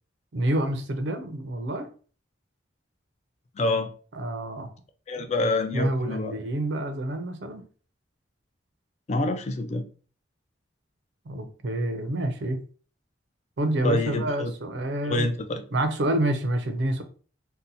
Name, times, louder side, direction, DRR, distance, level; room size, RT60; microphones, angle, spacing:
voice 1, 0.3-1.9 4.1-4.7 5.2-5.3 5.7-7.6 11.3-12.6 13.6-15.3 15.7-17.0, right 1 dB, 65° right, 0.5 m, -28 dB
voice 2, 3.6-3.9 5.1-6.3 9.1-9.8 13.8-14.5 15.0-15.6, left 2 dB, 35° left, 0.4 m, -26 dB
2.7 x 2.1 x 3.9 m
head